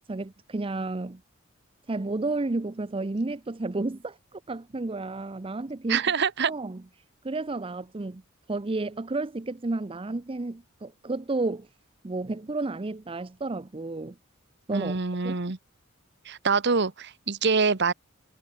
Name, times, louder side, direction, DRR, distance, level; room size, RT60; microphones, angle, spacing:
voice 1, 0.1-1.2 1.9-6.0 6.5-6.8 7.2-8.2 8.5-11.7 12.0-14.1 14.7-15.0 15.2-15.4, right 2 dB, 25° right, 0.6 m, -31 dB
voice 2, 5.9-6.5 14.7-15.6 16.2-17.9, right 5 dB, 55° right, 1.2 m, -25 dB
head